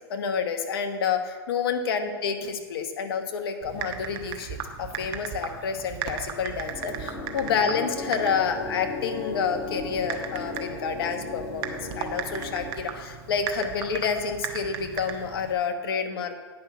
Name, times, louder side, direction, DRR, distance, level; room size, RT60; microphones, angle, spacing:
voice 1, 0.1-4.5 4.8-16.4, left 6 dB, 70° left, 7 dB, 1.2 m, -29 dB
Typing, 3.6-15.5, right 8 dB, 45° right, 1.2 m, -37 dB
sound 1, 6.7-12.7, left 3 dB, 30° left, 1.7 m, -36 dB
9.3 x 5.8 x 7.4 m, 1.5 s
hypercardioid pair, 115°, 13 cm